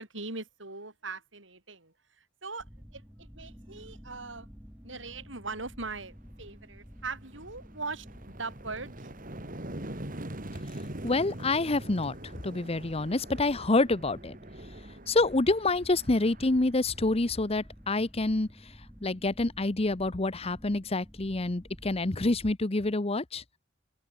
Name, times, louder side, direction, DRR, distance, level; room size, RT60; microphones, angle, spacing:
voice 1, 0.0-2.7 2.9-4.5 4.8-9.1, right 3 dB, 80° right, 7.0 m, -40 dB
sound 1, 2.6-22.5, equal, 5° right, 5.4 m, -51 dB
sound 2, 6.3-6.4 6.8-17.6, right 1 dB, 45° right, 3.9 m, -44 dB
voice 2, 11.0-14.4 15.1-18.5 19.0-23.4, left 2 dB, 30° left, 0.9 m, -27 dB
open air
head